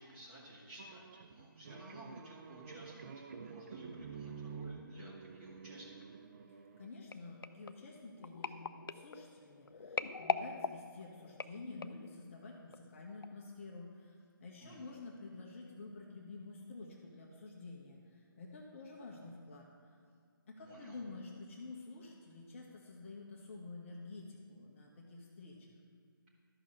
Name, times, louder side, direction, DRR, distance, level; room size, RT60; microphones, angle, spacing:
voice 1, 0.0-5.9 14.6-15.0 20.6-21.0, right 1 dB, 15° right, -7 dB, 2.0 m, -54 dB
sound 1, 0.8-6.9, right 5 dB, 35° right, 0.5 m, -49 dB
voice 2, 6.5-20.0 20.5-25.7, left 3 dB, 35° left, -2 dB, 1.3 m, -50 dB
sound 2, 7.1-12.1 12.7-13.0 13.2-13.3, left 5 dB, 70° left, 0.5 m, -41 dB
13.0 x 5.5 x 6.5 m, 2.2 s
figure-of-eight pair, 160°, 12 cm